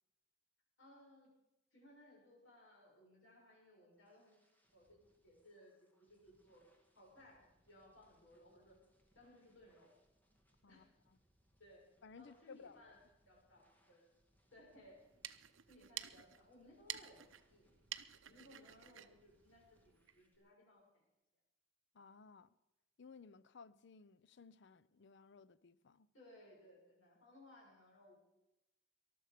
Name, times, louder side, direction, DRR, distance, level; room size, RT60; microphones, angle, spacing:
voice 1, 0.8-1.3 1.7-4.3 4.7-6.6 6.9-8.8 9.1-9.9 10.7-10.9 11.6-11.8 12.2-13.0 13.3-14.1 14.5-15.0 15.7-17.7 18.2-21.0 26.1-28.2, left 1 dB, 85° left, 6.2 m, -63 dB
sound 1, 3.6-20.4, equal, 10° left, 2.1 m, -77 dB
voice 2, 10.6-11.2 12.0-12.9 21.9-22.5 23.0-26.1, left 5 dB, 65° left, 0.6 m, -59 dB
sound 2, 14.9-20.2, right 12 dB, 80° right, 0.6 m, -51 dB
19.5 x 12.5 x 5.1 m
head